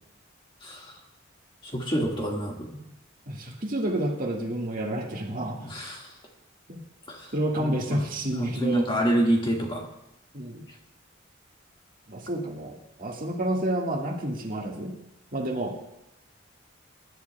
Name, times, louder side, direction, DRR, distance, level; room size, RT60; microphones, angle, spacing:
voice 1, 1.7-2.7 5.6-6.0 7.1-7.2 7.6-8.0 8.3-9.8, right 1 dB, 25° left, -1 dB, 1.9 m, -27 dB
voice 2, 3.3-5.6 6.7-6.8 7.3-8.9 10.3-10.6 12.1-14.9 15.3-15.8, right 1 dB, 45° right, 0 dB, 1.8 m, -29 dB
23.5 x 11.5 x 2.3 m, 0.86 s
head